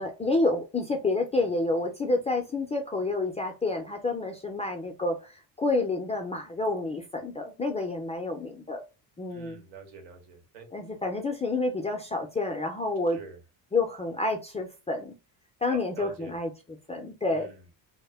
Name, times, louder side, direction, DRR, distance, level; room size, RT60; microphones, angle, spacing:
voice 1, 0.0-8.8 9.2-9.6 10.7-13.2 13.7-15.1 15.6-16.5 16.9-17.5, left 2 dB, 15° left, 3 dB, 0.4 m, -29 dB
voice 2, 9.3-10.7 13.1-13.4 15.7-16.4 17.3-17.6, right 5 dB, 90° right, 5 dB, 1.0 m, -45 dB
2.2 x 2.1 x 3.3 m, 0.29 s
cardioid pair, 100°, 43 cm